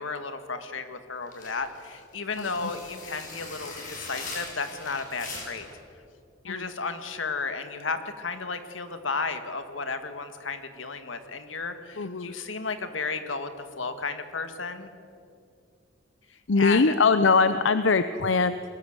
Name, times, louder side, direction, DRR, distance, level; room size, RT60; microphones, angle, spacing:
voice 1, 0.0-5.7 6.4-14.9 16.3-16.9, left 4 dB, 90° left, 8 dB, 1.9 m, -33 dB
sound 1, 1.3-5.8, left 3 dB, 45° left, 6.1 m, -40 dB
voice 2, 12.0-12.3 16.5-18.6, left 4 dB, 75° left, 11 dB, 0.7 m, -22 dB
22.5 x 19.0 x 8.1 m, 2.5 s
head